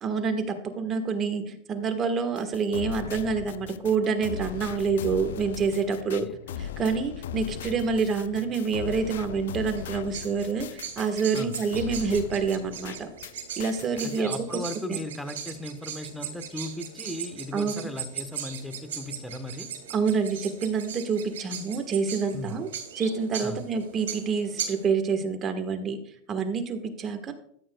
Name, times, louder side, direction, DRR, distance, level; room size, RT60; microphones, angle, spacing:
voice 1, 0.0-6.3 6.6-13.1 13.6-14.6 14.9-15.0 17.5-17.9 19.9-22.7 23.0-26.0 26.3-27.3, right 5 dB, 30° right, 7 dB, 1.4 m, -27 dB
sound 1, 2.4-13.3 13.6-14.2, left 9 dB, 80° left, 0.5 m, -39 dB
sound 2, 9.8-24.9, right 8 dB, 90° right, 2.2 m, -39 dB
voice 2, 13.9-19.7 22.3-22.6 23.4-23.6, left 1 dB, 5° left, 8 dB, 1.2 m, -37 dB
13.5 x 8.8 x 2.3 m, 0.67 s
supercardioid pair, 120°, 0 cm